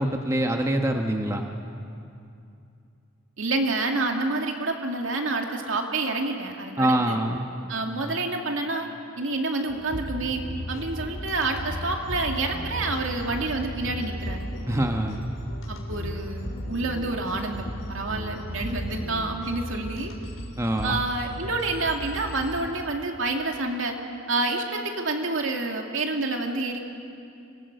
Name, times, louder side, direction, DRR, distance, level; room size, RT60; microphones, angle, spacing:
voice 1, 0.0-1.5 6.8-7.4 14.7-15.2 20.6-21.0, right 1 dB, 15° right, 3 dB, 1.1 m, -24 dB
voice 2, 3.4-7.2 7.7-8.9 9.2-10.4 10.7-14.4 15.7-20.1 20.8-24.0 24.3-26.8, right 2 dB, 75° right, 2 dB, 2.3 m, -28 dB
sound 1, 9.7-22.6, equal, 85° left, 4.0 m, -35 dB
25.0 x 18.5 x 8.1 m, 2.6 s
head